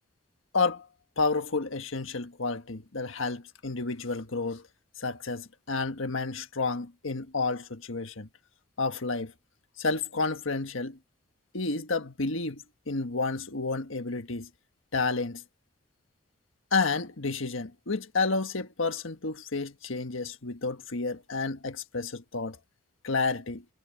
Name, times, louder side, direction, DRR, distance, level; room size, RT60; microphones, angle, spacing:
voice 1, 0.5-0.9 1.2-4.6 5.0-8.3 8.8-9.3 9.8-11.0 11.5-14.5 14.9-15.4 16.7-22.6 23.0-23.6, left 3 dB, 70° left, 1.5 m, -30 dB
head